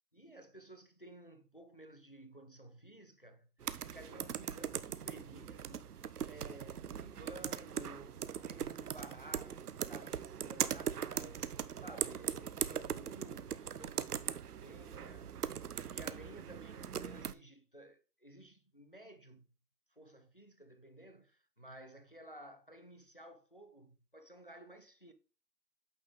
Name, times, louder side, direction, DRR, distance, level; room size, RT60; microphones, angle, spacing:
voice 1, 0.1-3.5 3.8-5.9 6.3-15.4 15.9-19.4 19.9-25.1, right 1 dB, 35° left, 0.5 m, -54 dB
sound 1, 3.6-17.3, right 8 dB, 65° right, 0.6 m, -40 dB
8.5 x 4.1 x 3.3 m
figure-of-eight pair, 165°, 50 cm